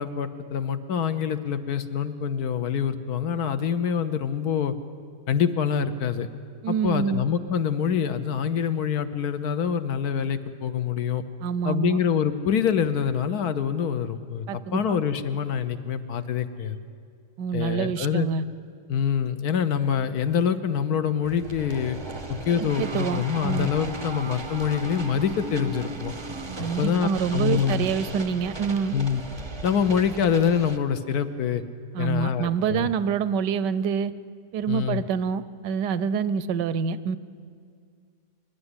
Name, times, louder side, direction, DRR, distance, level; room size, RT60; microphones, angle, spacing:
voice 1, 0.0-4.7 5.3-6.3 6.7-11.2 11.6-16.8 17.5-18.3 18.9-22.0 22.3-26.1 26.8-27.9 28.9-29.2 29.6-31.6 32.0-32.9 34.7-35.0, left 7 dB, 65° left, 11 dB, 1.3 m, -25 dB
voice 2, 6.6-7.2 11.4-12.0 14.5-15.0 17.4-18.4 22.8-23.7 26.6-28.9 31.9-34.1 34.5-37.2, right 7 dB, 85° right, 15 dB, 1.3 m, -26 dB
sound 1, 21.2-30.8, right 3 dB, 25° right, 0.6 m, -37 dB
sound 2, 23.2-24.4, right 1 dB, 5° left, 0.9 m, -39 dB
24.5 x 11.5 x 9.8 m, 2.2 s
omnidirectional pair, 1.8 m